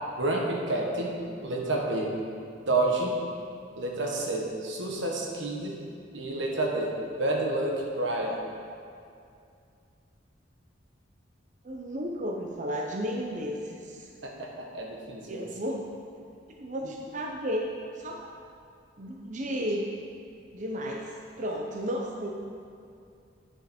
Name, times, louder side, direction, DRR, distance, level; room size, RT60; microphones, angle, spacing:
voice 1, 0.2-1.1 1.4-2.1 2.7-3.1 3.8-5.8 6.1-6.9 7.2-8.4 14.2-15.5 16.8-16.9, right 2 dB, 85° right, -1 dB, 1.3 m, -29 dB
voice 2, 11.6-14.1 15.3-15.9 16.6-17.7 17.9-18.2 19.0-19.8 20.5-22.3, equal, 40° right, 0 dB, 0.7 m, -33 dB
8.9 x 6.6 x 4.3 m, 2.4 s
head